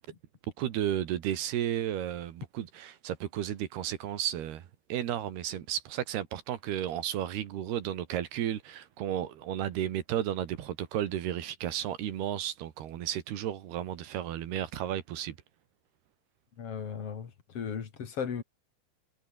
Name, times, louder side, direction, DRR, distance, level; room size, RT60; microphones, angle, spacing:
voice 1, 0.6-15.4, right 11 dB, 65° right, 3.5 m, -33 dB
voice 2, 16.6-18.4, left 7 dB, 40° left, 2.5 m, -36 dB
omnidirectional pair, 5.3 m